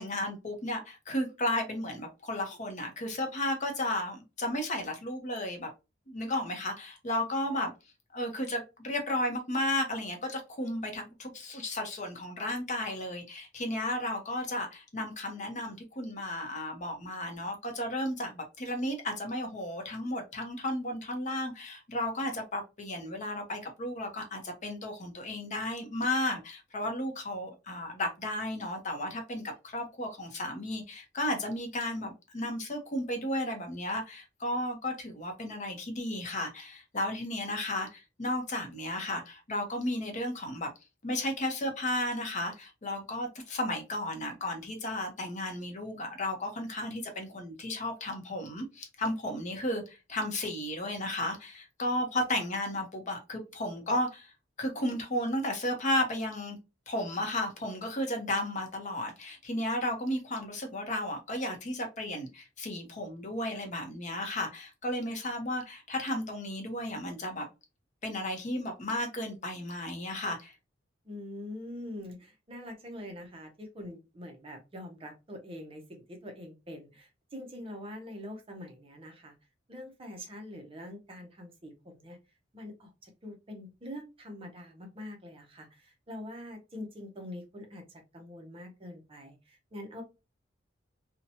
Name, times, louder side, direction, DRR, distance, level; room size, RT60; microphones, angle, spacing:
voice 1, 0.0-5.7 6.1-7.7 8.1-40.7 41.0-54.3 54.6-56.6 56.9-67.5 68.0-70.5, left 1 dB, 40° left, 4 dB, 0.7 m, -34 dB
voice 2, 71.0-79.3 79.7-82.2 82.5-90.0, left 1 dB, 30° right, 4 dB, 0.6 m, -44 dB
2.8 x 2.1 x 2.6 m, 0.27 s
head